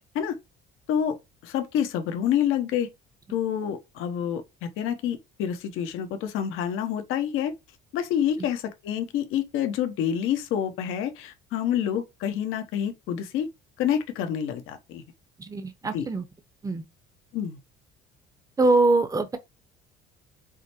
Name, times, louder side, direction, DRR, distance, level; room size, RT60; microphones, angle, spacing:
voice 1, 1.4-2.9 3.3-7.5 7.9-13.5 13.8-15.0 15.9-16.1 17.3-17.6, left 9 dB, 75° left, 0.9 m, -28 dB
voice 2, 15.4-16.3 16.6-16.8 18.6-19.4, right 2 dB, 15° right, 0.7 m, -23 dB
4.9 x 2.1 x 4.3 m
cardioid pair, 100°, 21 cm